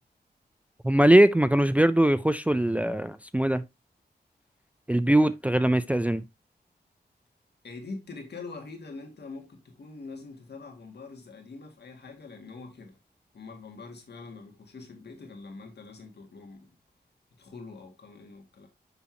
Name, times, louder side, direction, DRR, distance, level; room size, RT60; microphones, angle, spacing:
voice 1, 0.8-3.6 4.9-6.2, right 1 dB, 10° right, 0.3 m, -21 dB
voice 2, 7.6-13.0 13.3-16.7 17.4-18.7, left 3 dB, 75° left, 1.9 m, -44 dB
6.9 x 5.5 x 2.8 m
wide cardioid pair, 90°, 17 cm